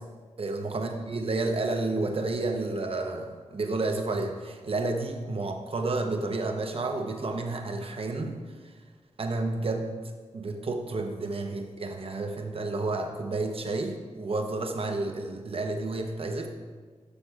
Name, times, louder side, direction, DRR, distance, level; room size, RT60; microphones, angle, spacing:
voice 1, 0.4-8.4 9.2-9.9 10.3-16.5, right 2 dB, 50° right, 4 dB, 0.8 m, -30 dB
11.5 x 6.4 x 2.4 m, 1.5 s
wide cardioid pair, 105°, 12 cm